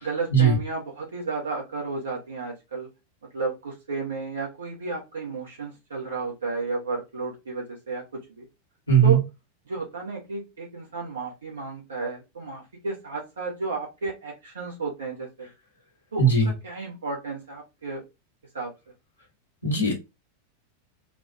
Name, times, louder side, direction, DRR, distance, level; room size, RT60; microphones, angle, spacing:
voice 1, 0.0-2.9 3.3-8.0 8.4-8.5 9.0-9.2 9.7-15.5 16.1-18.0 18.5-18.7, right 4 dB, 70° right, -1 dB, 1.2 m, -32 dB
voice 2, 8.9-9.2 16.2-16.5 19.6-19.9, right 5 dB, 80° left, -3 dB, 1.3 m, -18 dB
3.8 x 2.4 x 2.9 m, 0.24 s
figure-of-eight pair, 90°, 0 cm